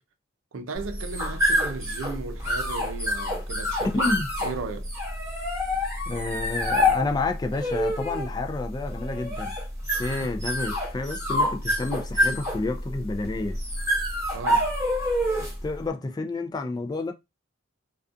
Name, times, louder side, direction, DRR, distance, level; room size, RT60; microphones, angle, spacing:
voice 1, 0.5-4.1 4.4-4.9 14.3-14.7, right 4 dB, 85° right, 0.5 m, -36 dB
sound 1, 0.8-15.7, left 1 dB, 15° right, 0.9 m, -27 dB
voice 2, 3.8-4.3 6.1-9.6 10.0-13.6 15.6-17.1, left 3 dB, 20° left, 0.3 m, -30 dB
2.4 x 2.2 x 2.5 m
head